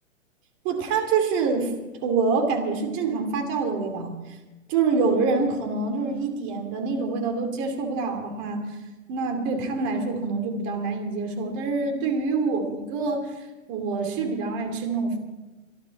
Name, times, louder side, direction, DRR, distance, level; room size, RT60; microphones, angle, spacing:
voice 1, 0.6-1.7 2.0-4.1 4.7-8.6 9.1-13.3 13.7-15.2, right 4 dB, 30° right, 4 dB, 2.7 m, -26 dB
26.0 x 11.0 x 4.1 m, 1.1 s
hypercardioid pair, 150°, 40 cm